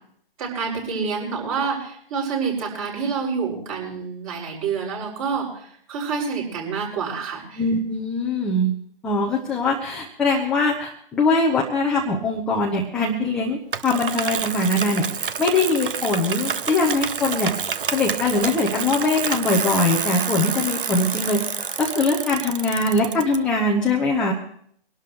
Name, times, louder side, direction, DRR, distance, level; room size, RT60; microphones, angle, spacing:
voice 1, 0.4-7.6, right 5 dB, 35° right, -3 dB, 6.5 m, -28 dB
voice 2, 7.6-8.7 9.0-15.1 15.4-17.5 17.9-21.4 21.8-24.3, left 2 dB, 5° left, -3 dB, 0.5 m, -22 dB
Bicycle, 13.7-23.4, right 6 dB, 60° right, 1.0 m, -28 dB
24.5 x 12.0 x 3.3 m, 0.64 s
figure-of-eight pair, 145°, 30 cm